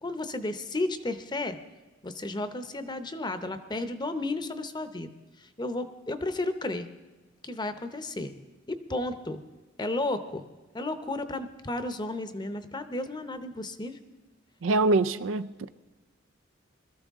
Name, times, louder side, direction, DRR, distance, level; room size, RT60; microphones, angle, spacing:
voice 1, 0.0-1.6 2.0-5.1 5.4-6.9 7.4-8.3 8.7-9.4 9.8-10.4 10.7-14.0, left 2 dB, 25° left, 0.8 m, -33 dB
voice 2, 14.6-15.7, right 3 dB, 90° right, 0.5 m, -24 dB
21.0 x 13.5 x 3.7 m
head